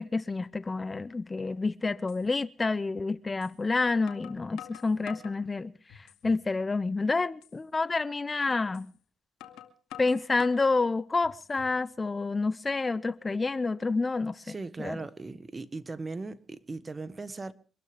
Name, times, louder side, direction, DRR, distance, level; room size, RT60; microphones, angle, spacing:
voice 1, 0.0-8.9 10.0-15.0, left 3 dB, 25° left, 0.6 m, -29 dB
sound 1, 2.1-2.2 3.4-3.5 4.1-5.4 5.9-6.4 6.8-6.9 7.4-7.6 8.7-8.9 9.4-10.7 11.2-11.8, left 11 dB, 80° left, 2.1 m, -47 dB
voice 2, 14.5-17.5, right 3 dB, 30° right, 1.3 m, -38 dB
25.0 x 13.0 x 3.4 m
supercardioid pair, 70°, 0 cm